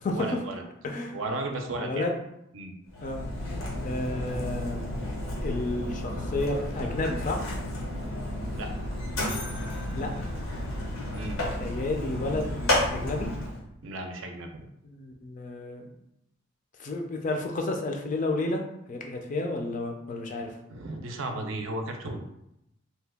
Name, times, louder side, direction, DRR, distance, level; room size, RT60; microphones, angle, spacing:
voice 1, 0.1-0.6 1.1-2.1 2.5-2.7 8.6-8.7 11.2-11.4 13.8-14.6 20.7-22.2, right 2 dB, 70° right, 4 dB, 0.5 m, -34 dB
voice 2, 0.8-1.1 1.8-2.1 3.0-3.2 3.8-4.9 5.4-7.4 9.9-10.3 11.6-13.3 14.8-15.9 16.8-18.6 18.9-20.5, left 2 dB, 40° left, 3 dB, 0.4 m, -31 dB
Mechanisms, 2.9-13.6, left 1 dB, 90° left, 0.8 m, -32 dB
2.8 x 2.2 x 3.4 m, 0.82 s
head